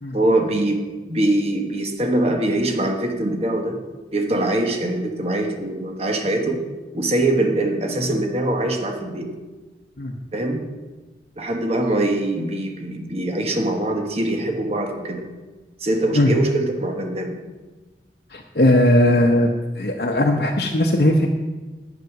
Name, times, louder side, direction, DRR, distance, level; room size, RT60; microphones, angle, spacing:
voice 1, 0.1-3.8 4.1-6.6 6.9-9.3 10.3-10.7 11.4-15.2 15.8-17.4, right 1 dB, 35° right, 3 dB, 1.3 m, -23 dB
voice 2, 18.3-19.5 19.8-21.3, left 1 dB, 60° left, 1 dB, 0.9 m, -18 dB
10.5 x 8.2 x 6.0 m, 1.2 s
head